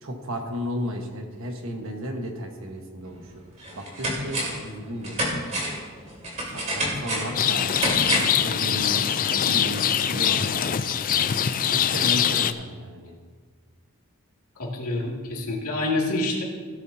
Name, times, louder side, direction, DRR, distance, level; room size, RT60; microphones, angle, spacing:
voice 1, 0.0-3.4 3.7-5.6 6.5-7.7 8.1-10.8 11.7-13.1, equal, 60° right, 3 dB, 1.4 m, -34 dB
sound 1, 3.0-3.1 3.6-4.7 5.0-8.4 8.8-8.9, right 1 dB, 30° right, 2.9 m, -28 dB
Rain, 7.3-12.5, left 9 dB, 40° left, 0.4 m, -23 dB
voice 2, 14.6-16.4, left 2 dB, 90° left, -2 dB, 2.4 m, -27 dB
17.0 x 9.9 x 2.8 m, 1.5 s
head